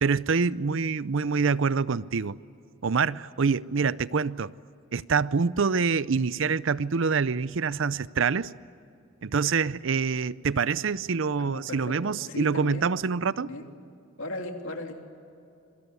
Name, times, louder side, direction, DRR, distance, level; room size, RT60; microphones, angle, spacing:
voice 1, 0.0-2.4 2.8-4.5 4.9-8.5 9.2-13.5, right 5 dB, 60° right, 0.6 m, -26 dB
voice 2, 11.4-12.9 13.4-13.7 14.2-15.0, left 1 dB, 65° left, 3.0 m, -37 dB
26.0 x 24.0 x 8.2 m
head